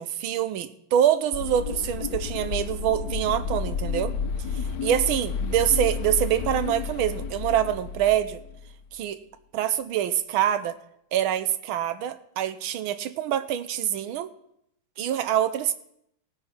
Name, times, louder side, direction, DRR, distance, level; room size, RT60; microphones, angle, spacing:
voice 1, 0.0-4.1 4.8-8.4 8.9-9.2 9.5-10.8 11.1-14.3 15.0-15.8, right 10 dB, 90° right, 12 dB, 1.6 m, -25 dB
sound 1, 1.3-8.7, left 6 dB, 65° left, 1.2 m, -31 dB
16.5 x 9.5 x 5.7 m, 0.76 s
omnidirectional pair, 2.2 m